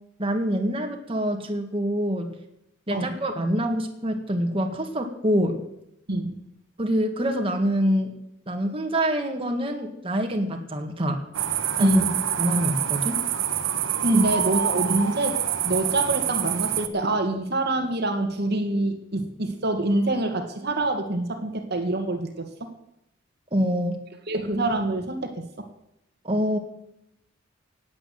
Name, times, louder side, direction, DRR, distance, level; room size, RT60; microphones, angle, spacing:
voice 1, 0.2-2.3 2.9-5.6 6.8-8.1 8.5-11.2 11.8-12.0 12.4-13.2 14.1-14.2 14.9-15.0 23.5-24.0 26.2-26.6, equal, 30° right, 3 dB, 2.0 m, -25 dB
voice 2, 6.1-6.4 11.8-12.2 14.0-15.4 15.6-22.7 24.3-25.4, right 2 dB, 55° right, 4 dB, 1.9 m, -26 dB
sound 1, 11.3-16.9, right 10 dB, 75° right, 1.2 m, -26 dB
17.5 x 8.7 x 7.7 m, 0.82 s
head